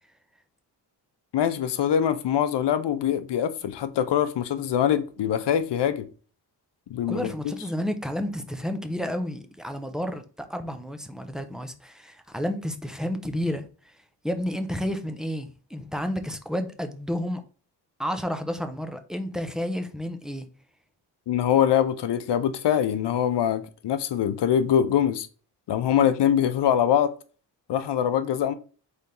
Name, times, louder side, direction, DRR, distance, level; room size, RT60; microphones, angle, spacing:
voice 1, 1.3-6.1 6.9-7.3 21.3-25.3 25.7-27.1 27.7-28.5, left 9 dB, 70° left, 0.7 m, -23 dB
voice 2, 7.1-13.6 14.2-17.4 18.0-20.5, equal, ahead, 0.6 m, -31 dB
4.1 x 3.4 x 3.7 m
wide cardioid pair, 115°, 42 cm